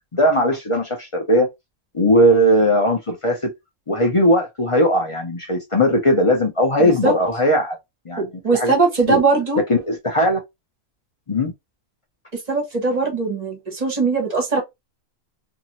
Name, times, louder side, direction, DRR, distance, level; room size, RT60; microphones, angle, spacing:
voice 1, 0.1-1.5 1.9-3.5 3.9-7.8 8.1-8.3 8.5-8.7 9.1-9.2 9.7-10.4 11.3-11.5, equal, 45° left, 0.4 m, -18 dB
voice 2, 6.8-7.1 8.2-9.6 12.5-14.6, right 4 dB, 30° right, 0.9 m, -20 dB
2.7 x 2.5 x 2.8 m
omnidirectional pair, 1.5 m